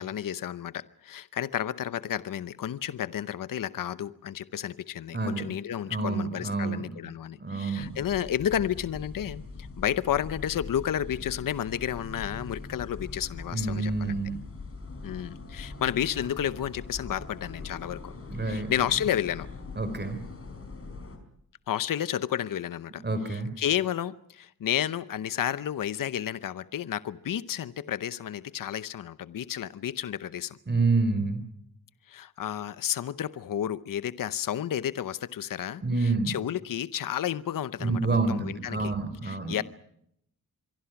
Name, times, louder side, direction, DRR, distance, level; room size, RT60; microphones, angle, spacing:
voice 1, 0.0-14.2 15.0-18.1 18.4-19.5 21.7-30.6 32.1-38.9 39.2-39.6, left 10 dB, 60° left, 0.8 m, -31 dB
voice 2, 5.1-5.5 5.9-7.0 7.4-8.0 13.5-14.4 18.3-18.7 19.8-20.2 23.0-23.5 30.7-31.4 35.8-36.3 37.8-39.6, right 3 dB, 30° right, 3.6 m, -28 dB
sound 1, 7.8-21.2, left 3 dB, 40° left, 4.5 m, -42 dB
25.5 x 23.5 x 5.9 m
wide cardioid pair, 135°, 37 cm